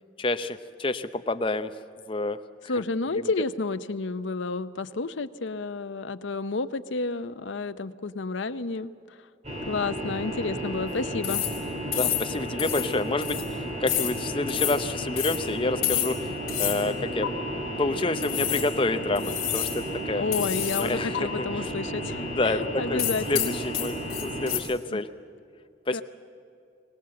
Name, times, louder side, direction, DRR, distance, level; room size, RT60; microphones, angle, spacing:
voice 1, 0.2-1.7 2.1-2.8 3.2-3.3 11.9-17.3 17.8-20.2 20.8-21.7 22.2-23.0 23.3-25.1 25.9-26.0, left 2 dB, 25° left, 9 dB, 0.7 m, -29 dB
voice 2, 2.7-9.2 9.7-11.5 20.1-23.6 24.9-25.0 25.9-26.0, left 3 dB, 80° left, 12 dB, 0.8 m, -30 dB
sound 1, 9.4-24.6, equal, 35° right, 3.0 m, -33 dB
sound 2, 11.2-11.6 11.9-12.3 12.6-12.9 13.2-13.5 13.9-14.1 14.5-14.8 15.2-15.4 15.8-16.2 16.5-16.8 17.2-17.3 18.2-18.7 19.1-19.8 20.3-20.9 21.1-21.2 23.0-24.6, left 13 dB, 50° left, 3.8 m, -29 dB
22.0 x 19.0 x 7.7 m, 2.5 s
head